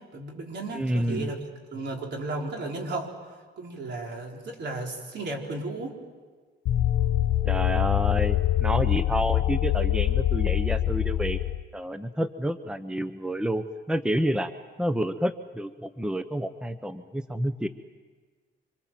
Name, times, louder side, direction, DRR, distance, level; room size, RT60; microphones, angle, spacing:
voice 1, 0.1-1.4 1.7-3.1 3.6-6.0, right 2 dB, 60° right, 1 dB, 4.3 m, -34 dB
voice 2, 0.7-1.3 7.4-11.4 11.7-14.5 14.8-17.7, equal, 5° right, 11 dB, 0.9 m, -29 dB
sound 1, 6.7-11.6, left 12 dB, 75° left, 0.7 m, -24 dB
26.0 x 23.0 x 7.6 m, 1.5 s
cardioid pair, 90°, 20 cm